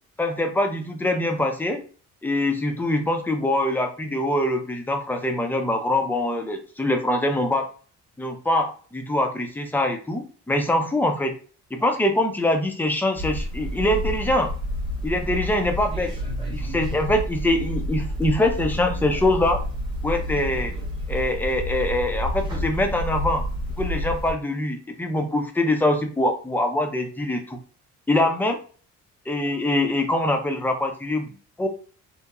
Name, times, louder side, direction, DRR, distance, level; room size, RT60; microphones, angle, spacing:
voice 1, 0.2-1.8 2.2-7.7 8.2-11.4 11.7-14.5 15.0-16.1 16.5-19.6 20.0-20.7 21.1-23.4 23.8-27.6 28.1-28.6 29.3-31.3 31.6-31.7, left 1 dB, 5° left, 4 dB, 0.5 m, -24 dB
sound 1, 13.2-24.3, equal, 15° right, 1.0 m, -29 dB
2.9 x 2.1 x 2.3 m, 0.41 s
cardioid pair, 90°, 30 cm